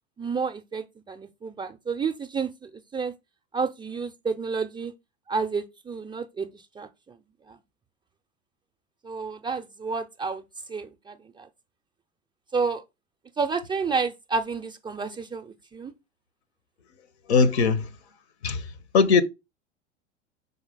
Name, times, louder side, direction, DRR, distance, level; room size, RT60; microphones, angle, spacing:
voice 1, 0.2-3.1 3.5-4.9 5.3-7.2 7.5-7.6 9.0-10.4 10.7-11.5 12.5-12.8 13.4-15.9, right 5 dB, 15° right, 0.5 m, -30 dB
voice 2, 17.3-17.9 18.4-19.2, left 5 dB, 65° left, 0.9 m, -21 dB
4.9 x 4.1 x 4.9 m
figure-of-eight pair, 85°, 35 cm